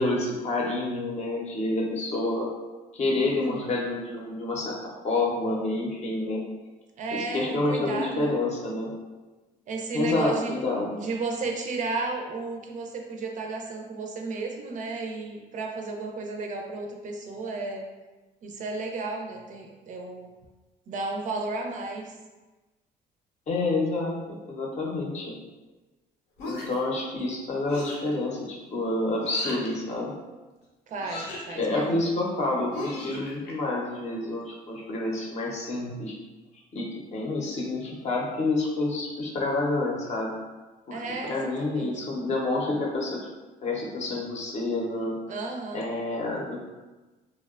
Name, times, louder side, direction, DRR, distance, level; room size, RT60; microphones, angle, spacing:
voice 1, 0.0-2.5 2.9-6.4 7.1-8.9 9.9-10.9 23.5-25.3 26.4-30.1 31.5-36.1 36.7-40.3 40.9-43.2 43.6-45.2 45.7-46.6, left 2 dB, 40° left, -2 dB, 0.6 m, -28 dB
voice 2, 3.2-3.7 7.0-8.3 9.7-10.5 10.9-17.8 18.4-20.3 20.9-22.2 30.9-32.0 40.9-41.9 45.3-45.9, right 3 dB, 50° right, 2 dB, 0.4 m, -33 dB
sound 1, 26.4-26.9 27.7-28.1 29.2-29.7 31.0-31.6 32.7-33.5, left 2 dB, 80° left, 0.6 m, -38 dB
2.8 x 2.1 x 2.3 m, 1.2 s
cardioid pair, 110°, 17 cm